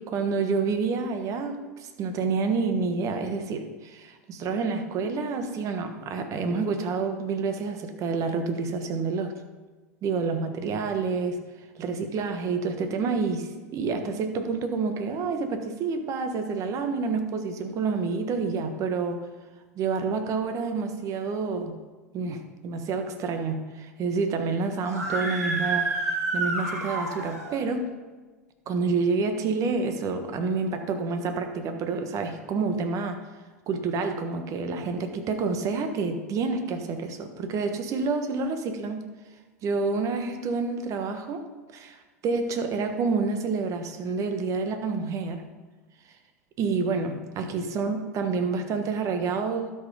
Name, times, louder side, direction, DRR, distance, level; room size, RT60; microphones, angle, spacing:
voice 1, 0.0-9.3 10.0-11.4 11.8-19.3 19.7-21.8 22.1-27.9 28.7-33.2 33.7-39.0 39.6-41.4 41.7-45.4 46.6-49.7, right 4 dB, 40° right, 7 dB, 1.3 m, -28 dB
Screaming, 24.8-27.6, right 3 dB, 85° right, 2.0 m, -29 dB
12.0 x 5.6 x 5.2 m, 1.3 s
hypercardioid pair, 90°, 8 cm